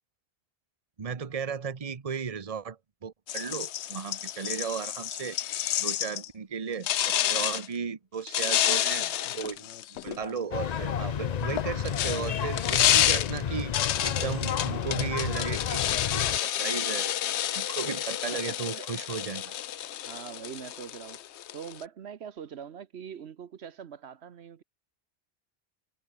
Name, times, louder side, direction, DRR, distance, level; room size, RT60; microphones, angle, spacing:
voice 1, 1.0-5.4 5.8-13.7 14.0-17.1 17.5-19.5, right 6 dB, 35° right, 1.0 m, -35 dB
sound 1, 3.3-6.3 6.8-7.7 8.3-10.4 11.4-21.8, left 12 dB, 85° left, 0.9 m, -29 dB
sound 2, 10.5-16.4, left 8 dB, 45° left, 0.6 m, -31 dB
Race car auto racing, 17.1-18.5, left 2 dB, 65° left, 3.5 m, -57 dB
voice 2, 18.3-18.9 20.0-24.6, right 8 dB, 75° right, 1.2 m, -43 dB
omnidirectional pair, 1.1 m